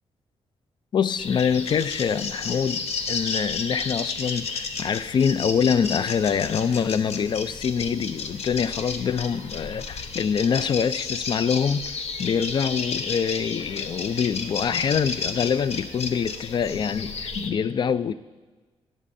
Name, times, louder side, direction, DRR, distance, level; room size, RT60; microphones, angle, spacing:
voice 1, 0.9-18.1, left 7 dB, 45° left, 0.3 m, -25 dB
sound 1, 1.2-17.5, left 4 dB, 75° left, 0.9 m, -32 dB
19.5 x 7.5 x 2.6 m
wide cardioid pair, 135°, 11 cm